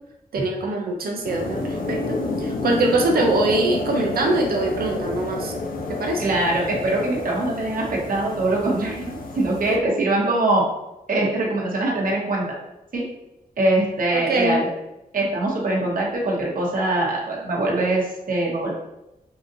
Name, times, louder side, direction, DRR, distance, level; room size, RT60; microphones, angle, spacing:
voice 1, 0.3-5.5 5.9-6.3 14.1-14.6, right 2 dB, 85° right, 1 dB, 0.5 m, -23 dB
sound 1, 1.2-9.8, left 2 dB, 70° left, 0.6 m, -30 dB
voice 2, 6.2-10.7 11.1-12.4 12.9-13.0 13.6-14.7 15.1-18.7, right 2 dB, 65° right, -3 dB, 1.0 m, -23 dB
4.7 x 2.6 x 2.6 m, 0.94 s
wide cardioid pair, 80°, 15 cm